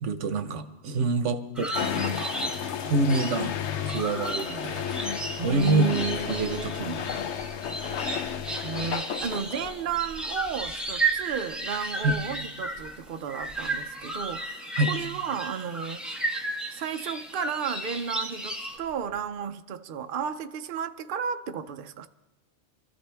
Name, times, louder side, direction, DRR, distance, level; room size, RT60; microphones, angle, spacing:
voice 1, 0.0-2.3 2.8-3.5 3.9-4.8 5.4-7.0 12.0-12.2 14.8-14.9, right 2 dB, 85° right, 1.2 m, -27 dB
sound 1, 1.6-18.8, right 2 dB, ahead, 1.7 m, -34 dB
sound 2, 1.7-10.0, left 8 dB, 75° left, 1.0 m, -33 dB
sound 3, 4.8-14.5 14.8-15.3 15.6-15.9 16.3-16.5 17.6-17.7 18.0-18.1 18.3-19.3, right 2 dB, 45° left, 6.7 m, -52 dB
voice 2, 5.4-7.0 8.6-16.0 16.7-22.1, right 7 dB, 55° right, 0.8 m, -33 dB
25.5 x 13.5 x 3.4 m
omnidirectional pair, 1.2 m